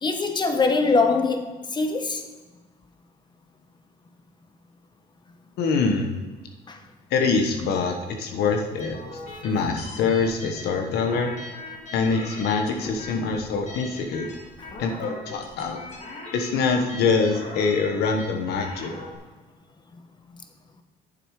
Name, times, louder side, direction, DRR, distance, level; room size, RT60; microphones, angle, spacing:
voice 1, 0.0-2.2 6.7-6.8, left 4 dB, 25° left, 6 dB, 1.1 m, -23 dB
voice 2, 5.6-6.1 7.1-9.0 9.4-11.3 11.9-14.3 14.8-15.8 16.3-18.9, left 4 dB, 75° left, 4 dB, 1.2 m, -24 dB
sound 1, 8.8-19.1, left 2 dB, 45° left, 2.0 m, -40 dB
8.9 x 7.1 x 4.8 m, 1.3 s
cardioid pair, 110°, 17 cm